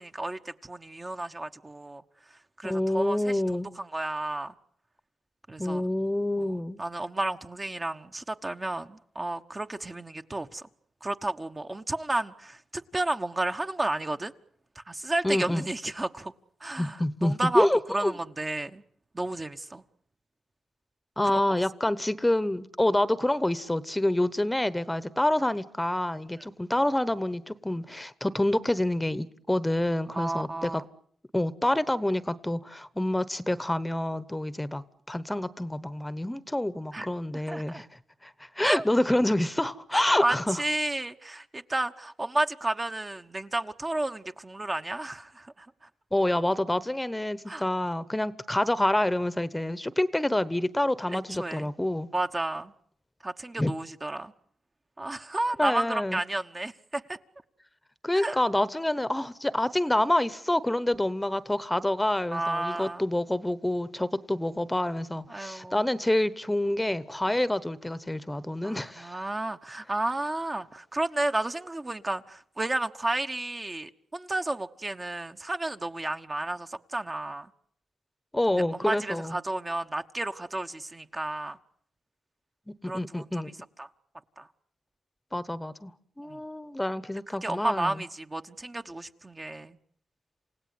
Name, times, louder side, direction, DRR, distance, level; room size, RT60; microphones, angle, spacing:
voice 1, 0.0-2.0 2.3-4.5 5.5-5.9 6.4-10.6 11.0-14.3 14.7-16.3 16.6-17.7 17.9-18.8 19.1-19.8 21.2-21.4 30.1-30.8 36.9-37.1 37.5-37.8 38.6-38.8 40.0-45.7 47.5-47.6 51.1-51.7 52.1-52.7 53.2-54.3 55.0-57.2 58.1-58.4 62.3-63.1 65.3-65.8 67.3-67.4 68.6-77.5 78.7-81.6 82.9-83.4 83.8-83.9 84.4-84.5 86.2-86.4 87.4-89.8, right 2 dB, 25° right, 1.2 m, -32 dB
voice 2, 2.6-3.7 5.6-6.8 15.2-15.7 16.8-18.2 21.2-30.8 31.3-37.9 38.2-40.6 46.1-52.1 53.6-53.7 55.6-56.2 58.0-69.2 78.3-79.4 82.7-83.5 85.3-85.9 86.2-87.9, left 1 dB, 10° left, 1.1 m, -27 dB
28.5 x 17.0 x 9.6 m
cardioid pair, 75°, 0 cm